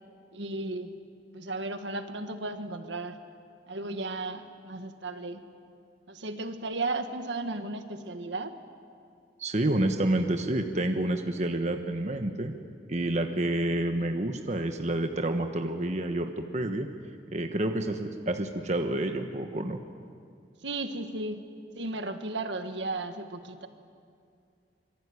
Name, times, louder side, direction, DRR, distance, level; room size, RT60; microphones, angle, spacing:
voice 1, 0.3-0.9 1.3-3.2 3.7-5.4 6.1-8.5 20.6-21.5 21.8-23.7, right 2 dB, 75° right, 7 dB, 1.8 m, -35 dB
voice 2, 9.4-12.6 12.9-16.9 17.3-19.8, right 1 dB, 40° right, 5 dB, 1.2 m, -29 dB
26.5 x 22.0 x 9.7 m, 2.3 s
head